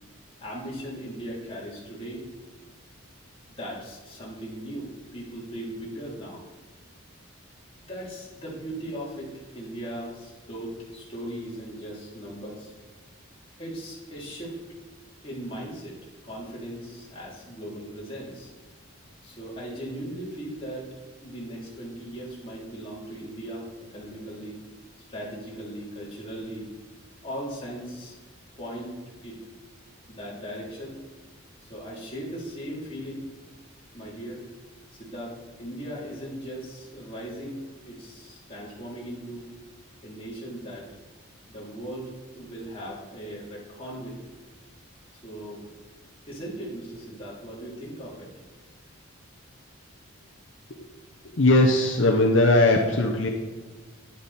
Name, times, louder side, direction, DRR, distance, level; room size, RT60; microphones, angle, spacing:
voice 1, 0.4-2.3 3.5-6.4 7.9-12.7 13.6-14.6 15.2-18.5 19.2-20.9 21.2-24.6 25.1-26.7 27.2-28.1 28.6-29.0 29.2-29.4 30.1-31.0 31.6-33.3 33.9-34.4 34.9-39.5 40.0-40.9 41.5-44.2 45.1-45.6 46.3-48.3, right 1 dB, 25° left, -6 dB, 3.4 m, -38 dB
voice 2, 51.3-53.3, left 2 dB, 65° left, 2 dB, 0.9 m, -19 dB
11.5 x 10.0 x 4.3 m, 1.3 s
head